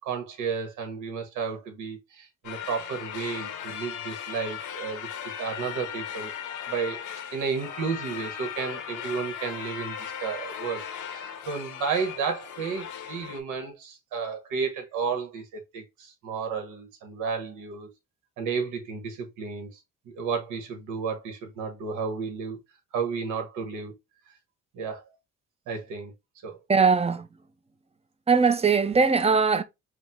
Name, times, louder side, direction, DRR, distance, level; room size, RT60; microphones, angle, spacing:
voice 1, 0.0-5.1 5.4-6.3 6.7-7.0 7.3-17.9 18.4-19.8 20.0-22.6 22.9-24.0 24.7-25.0 25.7-26.1 26.4-26.6, right 5 dB, 90° right, 1.2 m, -32 dB
sound 1, 2.4-13.4, left 9 dB, 80° left, 1.0 m, -37 dB
voice 2, 26.7-27.3 28.3-29.6, right 5 dB, 20° right, 0.5 m, -20 dB
5.1 x 2.1 x 3.5 m
cardioid pair, 90°, 30 cm